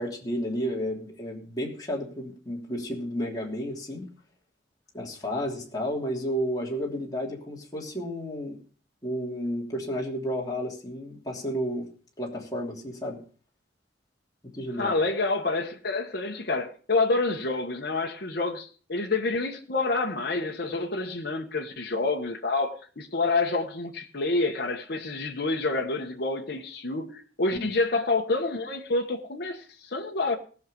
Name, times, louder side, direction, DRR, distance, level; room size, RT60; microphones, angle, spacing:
voice 1, 0.0-4.1 4.9-8.6 9.0-11.9 12.2-13.2 14.5-15.0 27.5-27.7, equal, 20° left, 3.0 m, -32 dB
voice 2, 14.8-30.4, left 3 dB, 60° left, 1.4 m, -28 dB
19.0 x 6.6 x 5.3 m
head